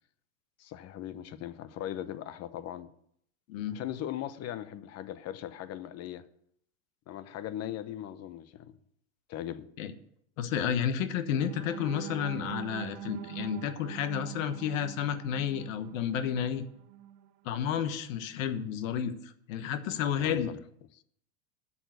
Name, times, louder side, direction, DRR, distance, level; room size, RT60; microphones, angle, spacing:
voice 1, 0.6-2.9 3.7-6.3 7.1-8.7 9.3-9.7 20.2-20.6 20.9-21.0, left 11 dB, 40° left, 0.9 m, -39 dB
voice 2, 10.4-16.6 17.4-20.5, left 8 dB, 70° left, 1.3 m, -31 dB
sound 1, 11.3-17.3 17.8-17.9 18.3-18.5, right 11 dB, 45° right, 0.8 m, -44 dB
8.6 x 7.2 x 8.2 m
supercardioid pair, 120°, 41 cm